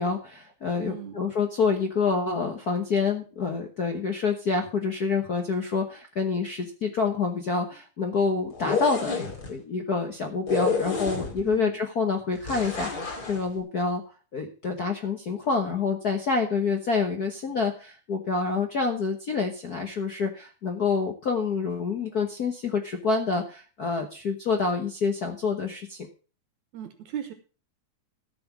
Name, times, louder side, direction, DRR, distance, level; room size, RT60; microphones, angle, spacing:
voice 1, 0.0-14.0 14.3-26.1, left 4 dB, 65° left, 4 dB, 0.9 m, -27 dB
voice 2, 0.8-1.2 11.4-11.8 26.7-27.3, right 9 dB, 70° right, 9 dB, 2.3 m, -37 dB
sound 1, 8.5-9.5 10.5-11.5 12.4-13.4, left 4 dB, 35° left, 2.6 m, -29 dB
14.0 x 6.1 x 6.0 m, 0.37 s
omnidirectional pair, 3.5 m